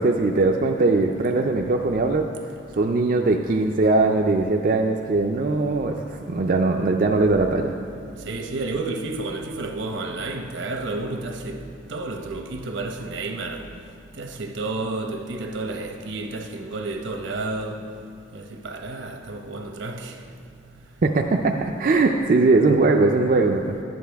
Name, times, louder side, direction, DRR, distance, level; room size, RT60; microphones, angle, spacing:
voice 1, 0.0-2.3 2.8-7.7 21.0-23.8, right 3 dB, 45° right, 0.4 m, -20 dB
voice 2, 8.3-11.6 11.9-13.6 14.2-17.8 18.3-20.1, right 2 dB, 75° right, 0.9 m, -31 dB
12.0 x 9.4 x 3.5 m
head